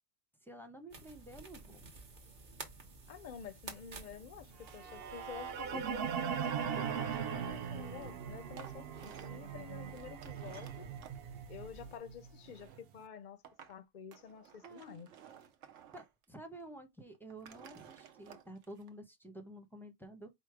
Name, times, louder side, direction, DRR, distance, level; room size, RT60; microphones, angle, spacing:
voice 1, 0.4-1.9 14.6-15.0 15.9-20.3, right 1 dB, 5° left, 0.5 m, -51 dB
sound 1, 0.9-12.0, right 3 dB, 45° right, 1.1 m, -54 dB
voice 2, 3.1-10.9 11.5-13.4 13.7-15.1, left 8 dB, 55° left, 0.5 m, -50 dB
sound 2, 4.1-4.2 4.4-4.8 5.9-7.1 8.0-8.2 8.5-9.5 9.9-11.2 12.1-12.8 13.4-13.8 14.1-16.3 16.5-16.6 17.1-18.9, right 9 dB, 85° right, 1.0 m, -56 dB
sound 3, 4.7-12.8, right 7 dB, 60° right, 0.7 m, -40 dB
4.6 x 2.1 x 4.7 m
omnidirectional pair, 1.2 m